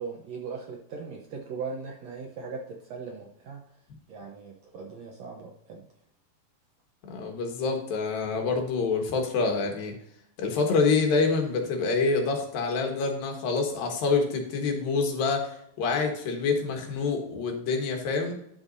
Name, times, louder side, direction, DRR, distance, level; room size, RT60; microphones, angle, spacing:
voice 1, 0.0-3.6 4.1-5.9, right 5 dB, 65° right, 0 dB, 1.8 m, -39 dB
voice 2, 7.0-9.9 10.4-18.4, left 4 dB, 75° left, 3 dB, 3.3 m, -26 dB
12.5 x 5.9 x 2.7 m, 0.70 s
omnidirectional pair, 4.1 m